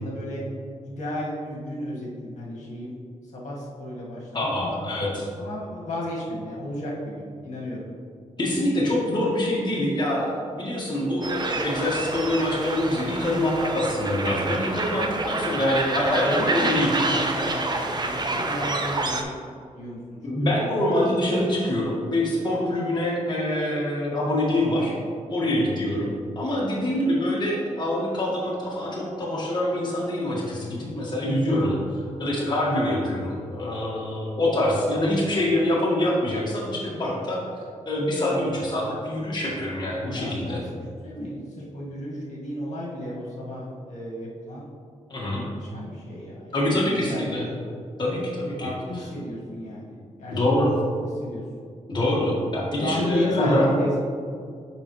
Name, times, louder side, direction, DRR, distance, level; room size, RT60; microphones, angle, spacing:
voice 1, 0.0-0.4 0.8-3.0 3.3-4.8 5.4-7.8 15.2-15.4 16.2-20.6 21.2-21.3 25.4-25.7 31.2-31.5 40.1-44.7 45.2-47.7 48.6-50.7 51.0-51.4 52.8-54.0, left 1 dB, 65° left, -5 dB, 1.8 m, -33 dB
voice 2, 4.3-5.3 8.4-16.9 20.2-24.9 25.3-37.4 37.8-40.6 45.1-45.4 46.5-47.4 48.0-48.7 50.3-50.8 51.9-53.7, left 1 dB, 35° left, -5 dB, 1.5 m, -25 dB
sound 1, 11.2-19.2, right 2 dB, 35° right, 0.7 m, -28 dB
7.7 x 5.6 x 3.1 m, 2.2 s
cardioid pair, 85°, 13 cm